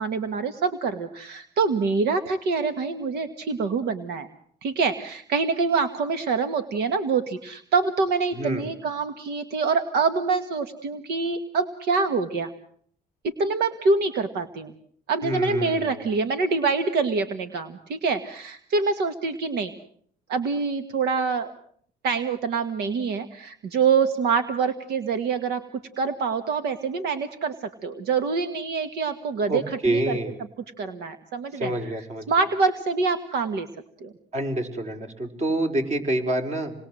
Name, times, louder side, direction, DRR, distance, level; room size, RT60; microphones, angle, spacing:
voice 1, 0.0-4.3 4.6-12.5 13.2-14.7 15.1-19.7 20.3-21.5 22.0-27.6 27.8-30.2 30.8-31.7 32.3-33.7 34.0-34.1, right 4 dB, 75° right, 10 dB, 1.7 m, -25 dB
voice 2, 8.3-8.7 15.2-16.0 29.5-30.4 31.5-32.3 34.3-36.7, right 1 dB, 40° right, 6 dB, 4.8 m, -27 dB
28.0 x 20.5 x 7.7 m, 0.63 s
cardioid pair, 110°, 17 cm